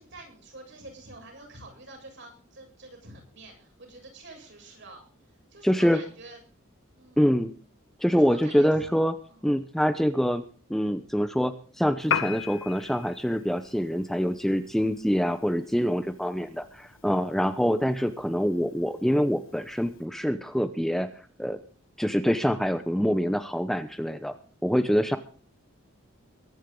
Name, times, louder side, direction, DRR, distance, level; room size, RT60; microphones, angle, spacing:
voice 1, 0.0-5.0 5.5-6.4 7.0-7.3 8.1-8.9 9.3-9.5, right 2 dB, 60° right, 2 dB, 7.8 m, -47 dB
voice 2, 5.6-6.0 7.2-7.5 8.0-9.1 9.4-10.4 10.7-21.1 21.4-21.6 22.0-24.4 24.6-25.2, equal, ahead, 9 dB, 0.8 m, -25 dB
Piano, 12.0-20.1, left 6 dB, 65° left, 1.4 m, -38 dB
22.5 x 10.0 x 3.8 m, 0.42 s
head